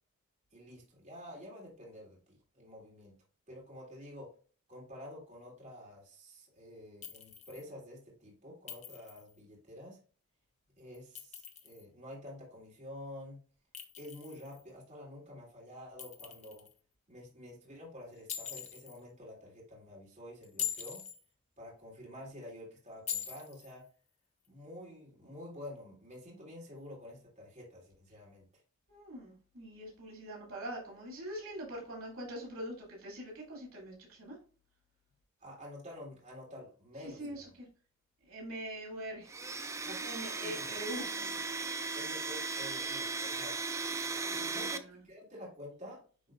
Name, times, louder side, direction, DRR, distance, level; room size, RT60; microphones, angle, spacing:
voice 1, 0.5-3.2 3.5-4.3 4.7-10.0 10.8-13.4 14.0-16.7 17.1-21.0 21.6-23.9 24.5-28.4 35.4-37.5 40.4-40.7 41.9-43.7 44.3-46.0, left 1 dB, 35° right, -4 dB, 3.2 m, -49 dB
Chink clink, 7.0-7.6 8.7-9.3 10.9-11.8 13.7-14.6 16.0-16.7 18.3-19.0 20.4-21.2 23.1-23.7, left 9 dB, 35° left, 0.9 m, -42 dB
voice 2, 28.9-34.4 37.0-37.7 38.2-39.3 39.8-41.7 44.1-45.0, right 1 dB, 80° right, -3 dB, 2.7 m, -44 dB
Domestic sounds home sounds, 39.3-44.8, right 4 dB, 15° right, 0.5 m, -37 dB
10.0 x 3.8 x 2.5 m, 0.40 s
head